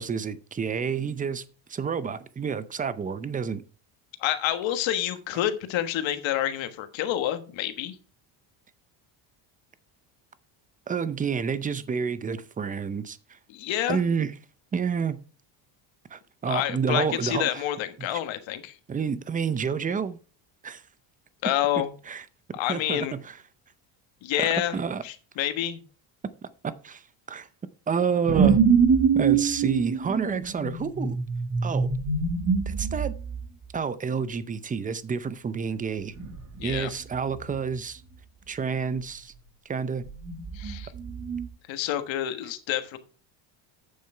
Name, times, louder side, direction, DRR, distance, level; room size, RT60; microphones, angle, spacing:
voice 1, 0.0-1.4 1.7-3.6 10.9-13.2 13.9-14.3 14.7-15.2 16.1-17.6 18.9-20.2 20.6-20.8 22.1-22.2 22.7-23.4 24.7-25.0 26.6-27.0 27.3-27.5 27.9-28.6 29.1-31.2 31.6-31.9 32.7-33.1 33.7-36.1 36.6-38.0 38.5-39.3 39.7-40.0, right 6 dB, 15° right, 0.5 m, -29 dB
voice 2, 4.2-8.0 13.5-14.0 16.4-18.8 21.4-21.9 22.5-23.2 24.2-24.8 25.0-25.8 36.6-36.9 40.5-40.9 41.7-43.0, left 12 dB, 65° left, 1.5 m, -28 dB
sound 1, 28.3-33.5 36.2-36.9 37.1-37.6 40.1-41.5, right 6 dB, 35° right, 1.8 m, -25 dB
8.8 x 7.1 x 4.4 m
cardioid pair, 135°, 50 cm